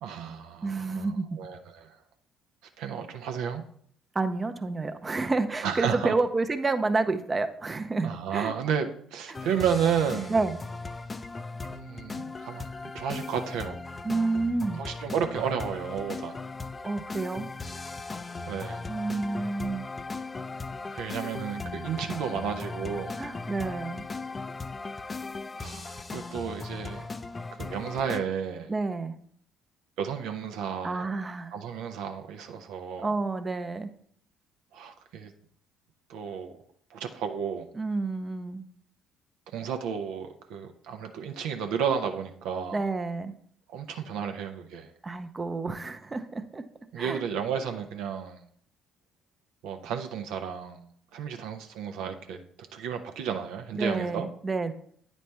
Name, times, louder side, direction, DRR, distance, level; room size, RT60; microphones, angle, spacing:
voice 1, 0.0-2.0 2.8-3.6 5.6-6.1 8.0-10.3 11.7-13.8 14.8-16.4 18.5-18.8 20.9-23.2 25.6-27.1 27.5-28.7 30.0-31.1 31.5-33.1 34.7-35.3 36.1-36.5 36.9-37.7 39.5-42.8 43.7-44.9 46.9-48.4 49.6-50.8 51.1-52.4 52.7-54.3, right 7 dB, 75° right, 5 dB, 0.5 m, -32 dB
voice 2, 0.6-1.4 4.1-8.5 9.3-9.4 10.3-10.6 14.0-14.8 16.8-17.5 18.9-19.9 23.2-24.0 28.7-29.2 30.8-31.5 33.0-33.9 37.8-38.7 42.7-43.3 45.0-46.6 47.0-47.2 53.7-54.7, right 3 dB, 30° right, 8 dB, 0.6 m, -29 dB
sound 1, 9.3-28.2, left 3 dB, 30° left, 0.4 m, -38 dB
9.2 x 4.1 x 3.3 m, 0.63 s
hypercardioid pair, 55°, 0 cm